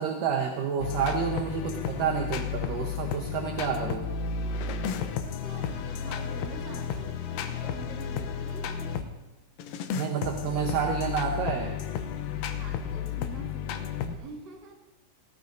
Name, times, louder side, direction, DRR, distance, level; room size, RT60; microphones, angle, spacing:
voice 1, 0.0-4.1 9.9-11.7, right 7 dB, 70° right, 1 dB, 2.1 m, -29 dB
sound 1, 0.8-9.1 9.6-14.2, left 7 dB, 90° left, 1.9 m, -33 dB
voice 2, 4.3-9.1 12.4-14.7, right 3 dB, 35° right, -3 dB, 1.9 m, -46 dB
18.5 x 14.5 x 2.6 m, 1.1 s
omnidirectional pair, 4.9 m